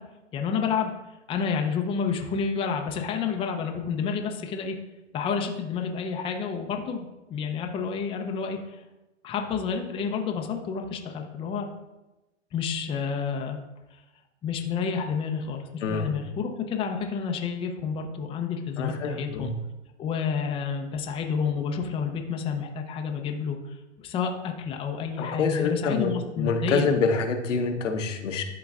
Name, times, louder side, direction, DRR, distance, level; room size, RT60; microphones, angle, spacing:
voice 1, 0.3-0.9 1.3-4.8 5.1-8.8 9.2-11.7 12.5-13.6 14.4-19.5 20.0-26.9, left 6 dB, 15° left, 3 dB, 0.5 m, -29 dB
voice 2, 15.8-16.2 18.8-19.6 25.2-28.4, left 4 dB, 80° left, 6 dB, 1.0 m, -26 dB
11.5 x 3.9 x 2.4 m, 1.0 s
hypercardioid pair, 120°, 37 cm